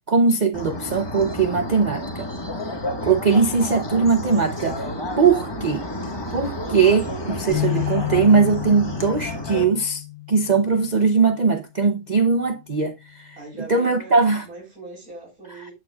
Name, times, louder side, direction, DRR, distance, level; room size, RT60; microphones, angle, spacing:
voice 1, 0.1-2.3 3.0-4.9 5.2-5.8 6.3-13.4 13.7-14.4, right 5 dB, 45° right, 0.6 m, -20 dB
sound 1, 0.5-9.6, left 1 dB, 20° left, 1.2 m, -31 dB
sound 2, 7.5-11.0, left 17 dB, 70° left, 2.0 m, -30 dB
voice 2, 13.4-15.7, right 2 dB, 70° right, 4.3 m, -40 dB
12.0 x 6.9 x 2.3 m
omnidirectional pair, 1.6 m